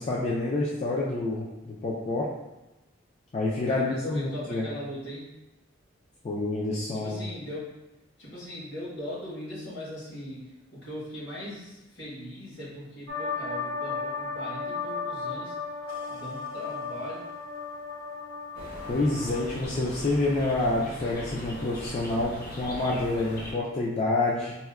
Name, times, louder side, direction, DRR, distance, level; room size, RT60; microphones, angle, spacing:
voice 1, 0.0-2.3 3.3-4.7 6.2-7.2 18.9-24.6, left 2 dB, 35° left, -5 dB, 0.3 m, -28 dB
voice 2, 3.7-5.3 7.0-7.8 8.2-15.5 16.1-17.3, left 1 dB, 70° left, -7 dB, 1.4 m, -39 dB
sound 1, 13.1-19.4, left 4 dB, 90° right, 0.5 m, -35 dB
sound 2, 18.5-23.5, equal, 50° left, 0.8 m, -40 dB
4.1 x 2.1 x 2.3 m, 0.98 s
head